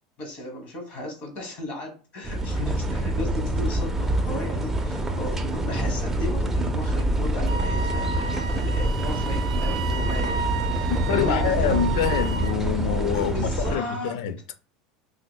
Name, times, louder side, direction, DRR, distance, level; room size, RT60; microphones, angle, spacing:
voice 1, 0.2-8.2 8.5-10.4 10.7-11.9 13.1-14.2, left 1 dB, 50° left, 1.3 m, -35 dB
sound 1, 2.2-13.8, right 1 dB, 10° right, 0.5 m, -26 dB
Wind instrument woodwind instrument, 7.5-12.6, right 6 dB, 85° right, 0.3 m, -33 dB
voice 2, 10.9-14.4, left 8 dB, 75° left, 0.4 m, -26 dB
5.6 x 2.1 x 2.2 m
supercardioid pair, 115°, 3 cm